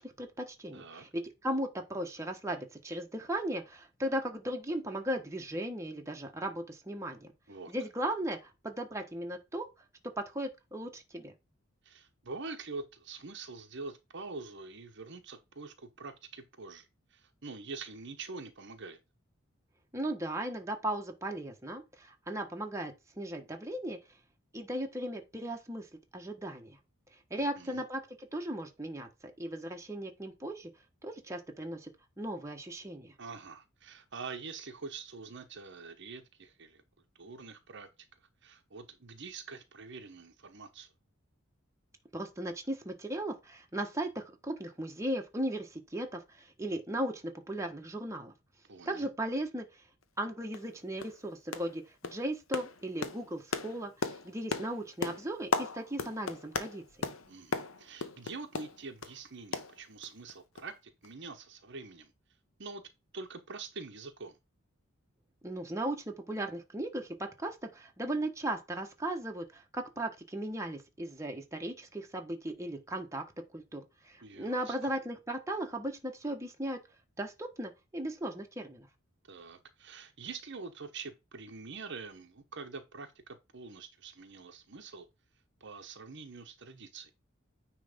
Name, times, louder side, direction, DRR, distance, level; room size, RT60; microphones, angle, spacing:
voice 1, 0.0-7.3 7.7-9.7 10.0-11.3 19.9-24.0 24.5-25.9 26.1-26.8 27.3-30.7 31.0-31.9 32.2-33.1 42.1-48.3 48.9-49.8 50.2-53.9 54.2-56.8 65.4-73.2 73.5-76.8 77.2-78.9, right 1 dB, 15° right, 1.3 m, -37 dB
voice 2, 0.7-1.0 7.5-7.7 11.8-19.0 27.4-27.8 33.2-36.8 37.2-37.9 38.4-40.9 48.7-49.1 57.3-62.1 62.6-62.8 63.1-64.4 74.2-74.8 79.3-85.1 85.6-87.1, right 4 dB, 60° right, 1.0 m, -45 dB
sound 1, 50.0-50.1 50.5-50.7 51.0-51.2 51.5-51.8 52.0-59.2 59.5-60.3 60.6-60.7 61.0-61.1, left 4 dB, 80° left, 1.0 m, -37 dB
9.5 x 3.3 x 5.1 m
head